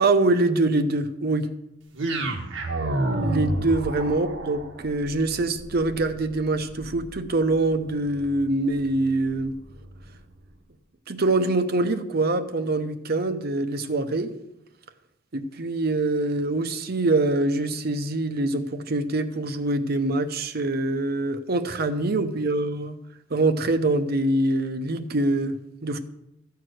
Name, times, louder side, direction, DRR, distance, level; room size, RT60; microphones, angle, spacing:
voice 1, 0.0-1.5 3.2-9.5 11.1-14.3 15.3-23.0 23.3-25.6 25.8-26.0, right 2 dB, 55° right, 8 dB, 0.8 m, -24 dB
sound 1, 1.9-10.2, right 1 dB, 85° right, 1.4 m, -32 dB
14.0 x 4.7 x 7.7 m, 0.86 s
head